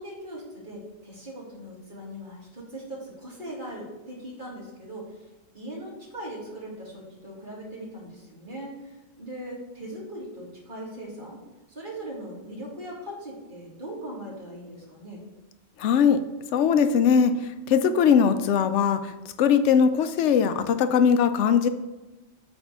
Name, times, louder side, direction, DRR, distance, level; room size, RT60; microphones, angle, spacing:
voice 1, 0.0-5.1 5.5-11.4 11.7-15.2, right 1 dB, 40° right, -5 dB, 2.6 m, -39 dB
voice 2, 15.8-16.2 16.5-17.3 17.7-19.1 19.4-21.7, left 7 dB, 65° left, 10 dB, 0.9 m, -20 dB
8.8 x 3.3 x 6.6 m, 1.1 s
omnidirectional pair, 1.3 m